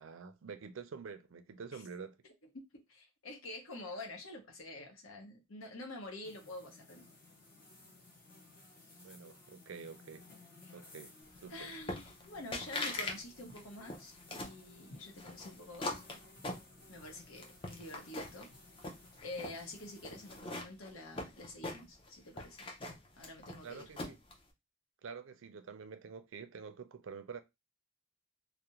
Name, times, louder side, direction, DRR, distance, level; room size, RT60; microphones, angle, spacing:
voice 1, 0.0-2.2 9.0-10.2 10.7-11.7 23.6-24.2 25.0-27.4, right 5 dB, 65° right, 0.4 m, -48 dB
voice 2, 2.5-7.1 10.6-10.7 11.5-16.0 16.9-18.5 18.8-18.9 19.2-22.7 23.2-23.9, left 2 dB, 75° left, 0.9 m, -48 dB
sound 1, 6.2-20.4, left 2 dB, 45° left, 0.9 m, -58 dB
sound 2, 11.9-12.3 12.5-13.2 13.5-14.6 15.2-17.1 17.4-18.5 18.8-19.6 20.0-22.1 22.4-24.3, left 2 dB, 25° left, 0.4 m, -41 dB
2.4 x 2.1 x 2.9 m
head